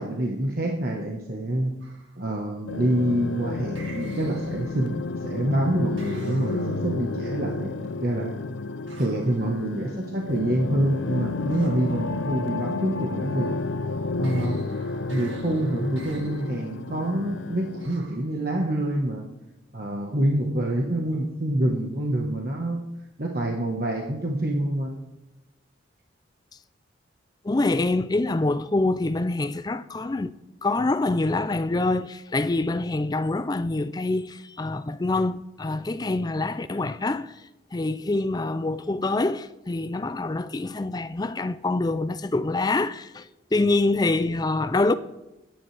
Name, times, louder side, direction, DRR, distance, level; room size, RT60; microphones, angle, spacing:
voice 1, 0.0-1.7 2.2-8.3 9.0-13.5 14.2-14.7 15.1-19.2 19.7-22.8 23.2-25.0, right 1 dB, 50° right, 1.3 m, -26 dB
sound 1, 1.8-2.2 3.7-5.0 6.0-7.0 8.9-9.4 11.5-12.0 14.2-16.7 17.8-18.3, right 3 dB, 80° right, 2.1 m, -47 dB
sound 2, 2.7-17.9, left 3 dB, 85° left, 0.6 m, -31 dB
voice 2, 27.4-30.3 30.6-37.4 37.7-44.9, left 2 dB, 20° left, 0.4 m, -25 dB
23.5 x 9.9 x 3.4 m
head